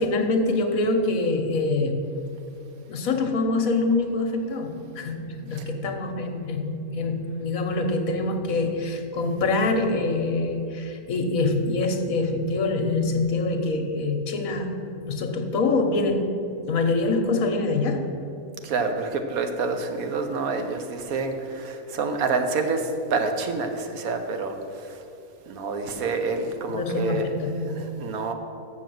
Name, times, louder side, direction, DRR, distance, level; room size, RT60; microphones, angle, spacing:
voice 1, 0.0-2.1 2.9-14.7 15.0-16.3 16.7-18.0 26.7-27.8, left 3 dB, 75° left, 5 dB, 1.3 m, -25 dB
voice 2, 18.6-25.0 25.5-27.4 27.7-28.3, right 4 dB, 80° right, 6 dB, 1.3 m, -28 dB
7.1 x 6.4 x 7.6 m, 2.7 s
omnidirectional pair, 1.5 m